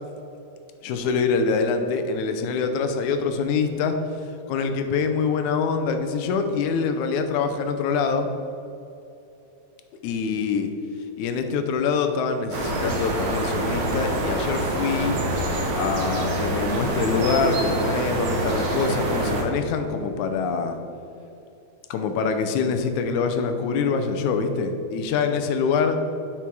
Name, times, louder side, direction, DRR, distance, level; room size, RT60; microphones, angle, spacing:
voice 1, 0.8-4.0 4.5-8.3 10.0-10.7 11.2-15.2 15.7-20.8 21.9-26.0, left 5 dB, 85° left, 7 dB, 2.1 m, -25 dB
sound 1, 12.5-19.4, right 1 dB, 65° right, 2.1 m, -26 dB
7.8 x 5.9 x 4.6 m, 2.8 s
omnidirectional pair, 3.3 m